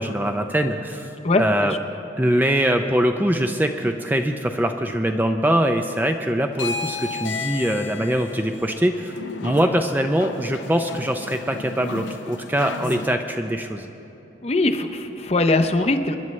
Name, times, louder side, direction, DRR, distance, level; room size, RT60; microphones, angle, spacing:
voice 1, 0.0-1.1 1.4-1.7 2.2-9.1 9.4-13.9, right 1 dB, 10° right, 5 dB, 0.4 m, -22 dB
voice 2, 1.2-1.8 12.8-13.0 14.4-16.2, left 2 dB, 35° left, 7 dB, 0.6 m, -21 dB
sound 1, 6.5-13.1, left 4 dB, 80° left, 0.6 m, -34 dB
27.5 x 11.0 x 3.2 m, 2.9 s
head